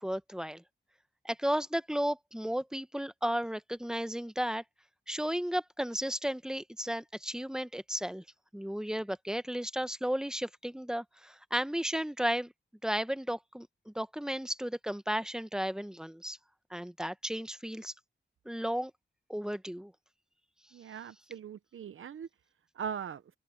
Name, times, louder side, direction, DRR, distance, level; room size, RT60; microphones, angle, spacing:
voice 1, 0.0-0.6 1.2-4.6 5.1-8.2 8.5-12.5 12.8-16.4 16.7-17.9 18.4-18.9 19.3-19.9, equal, 5° right, 1.1 m, -34 dB
voice 2, 20.7-22.3 22.8-23.2, right 7 dB, 85° right, 0.7 m, -40 dB
open air
cardioid pair, 50°, 20 cm